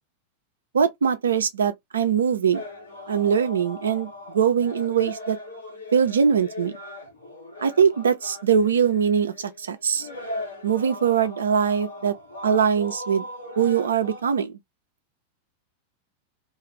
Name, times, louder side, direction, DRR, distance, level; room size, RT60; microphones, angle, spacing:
voice 1, 0.7-2.6 3.1-5.4 5.9-6.8 7.6-10.1 10.6-12.1 12.4-13.2 13.6-14.5, right 7 dB, 70° right, 0.4 m, -22 dB
sound 1, 2.5-14.2, left 1 dB, 80° left, 1.0 m, -39 dB
2.4 x 2.4 x 3.0 m
figure-of-eight pair, 90°, 0 cm